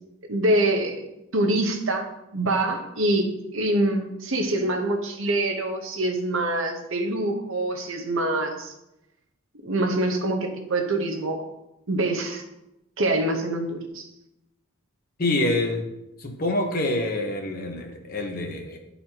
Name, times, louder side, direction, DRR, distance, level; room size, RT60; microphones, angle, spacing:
voice 1, 0.3-1.1 1.3-3.3 3.5-8.7 9.6-11.4 11.9-12.4 13.0-14.1, right 1 dB, 60° right, 4 dB, 0.9 m, -25 dB
voice 2, 15.2-15.9 16.2-18.8, left 2 dB, 40° left, 3 dB, 0.9 m, -26 dB
10.5 x 4.1 x 2.9 m, 0.88 s
head